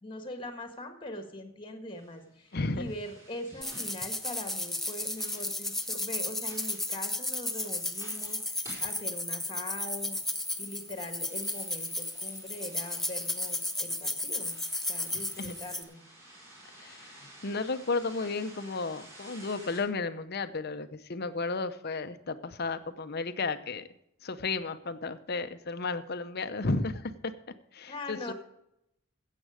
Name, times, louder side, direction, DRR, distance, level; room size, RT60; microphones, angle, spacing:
voice 1, 0.0-10.2 10.6-14.6 14.9-16.0 27.9-28.3, left 1 dB, 25° left, 6 dB, 1.6 m, -42 dB
sound 1, 1.9-19.8, right 1 dB, 15° right, 4.7 m, -54 dB
voice 2, 2.5-2.9 15.4-15.6 16.7-23.9 24.2-27.3 27.7-28.3, left 3 dB, 50° left, 11 dB, 0.7 m, -33 dB
sound 2, 3.6-15.8, left 2 dB, ahead, 0.6 m, -34 dB
15.5 x 7.6 x 4.9 m, 0.82 s
head